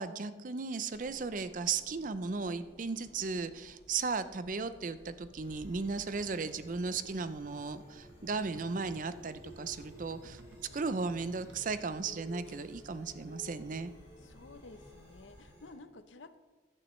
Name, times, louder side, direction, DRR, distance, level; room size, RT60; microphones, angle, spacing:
voice 1, 0.0-10.4 10.7-13.9, right 4 dB, 45° right, 13 dB, 0.5 m, -36 dB
sound 1, 0.9-15.5, left 1 dB, 30° left, 1.0 m, -58 dB
sound 2, 5.4-15.7, left 1 dB, 15° right, 3.9 m, -55 dB
sound 3, 6.4-11.7, right 1 dB, 75° right, 1.1 m, -59 dB
voice 2, 14.2-16.4, left 3 dB, 90° left, 11 dB, 0.7 m, -52 dB
15.0 x 11.0 x 3.2 m, 1.2 s
head